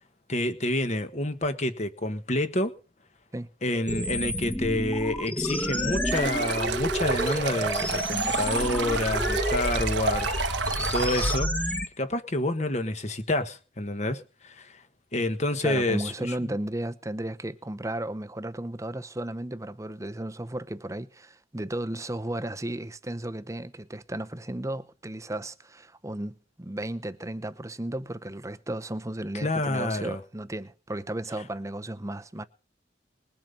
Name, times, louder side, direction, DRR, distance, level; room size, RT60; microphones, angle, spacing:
voice 1, 0.3-2.7 3.6-10.6 10.9-14.8 15.1-16.3 29.3-30.2, left 1 dB, 40° left, 1.5 m, -28 dB
sound 1, 3.9-11.9, equal, 10° left, 1.1 m, -30 dB
Stream, 6.1-11.4, right 4 dB, 80° right, 1.2 m, -30 dB
voice 2, 15.6-32.4, right 1 dB, 15° right, 0.8 m, -34 dB
21.0 x 7.6 x 5.4 m
head